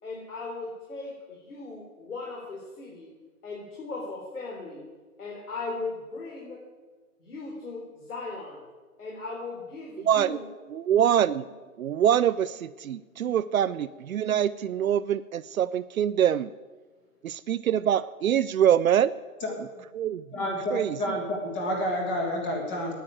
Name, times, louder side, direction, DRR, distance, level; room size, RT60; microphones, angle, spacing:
voice 1, 0.0-3.1 3.4-4.8 5.2-6.6 7.2-8.6 9.0-10.5 13.1-13.5 14.4-14.6, left 3 dB, 85° left, -3 dB, 4.2 m, -38 dB
voice 2, 10.1-10.4 10.7-11.4 11.8-16.5 17.2-19.1 19.9-20.2 20.7-20.9, right 10 dB, 70° right, 15 dB, 0.6 m, -24 dB
voice 3, 20.3-22.9, equal, 10° left, 1 dB, 1.5 m, -29 dB
10.0 x 9.6 x 8.9 m, 1.3 s
hypercardioid pair, 170°, 43 cm